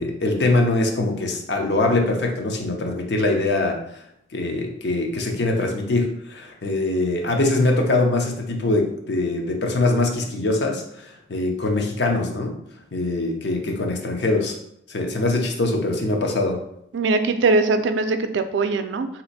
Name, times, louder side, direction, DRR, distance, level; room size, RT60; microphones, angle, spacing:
voice 1, 0.0-3.8 4.3-12.6 12.9-14.6 14.9-16.6, left 2 dB, 70° left, 2 dB, 0.6 m, -23 dB
voice 2, 16.9-19.1, right 3 dB, 85° right, 9 dB, 0.4 m, -21 dB
2.8 x 2.5 x 4.0 m, 0.73 s
head